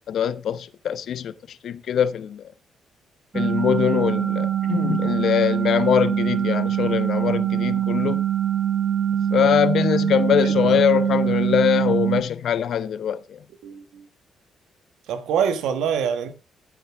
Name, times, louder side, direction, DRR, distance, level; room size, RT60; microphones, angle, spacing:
voice 1, 0.1-1.3 1.6-2.5 3.3-8.2 9.3-13.4, left 9 dB, 65° left, 0.9 m, -22 dB
sound 1, 3.3-12.2, right 9 dB, 30° right, 1.6 m, -23 dB
voice 2, 13.6-14.0 15.1-16.3, right 7 dB, 85° right, 1.4 m, -25 dB
13.5 x 8.8 x 3.5 m
cardioid pair, 90°, 0 cm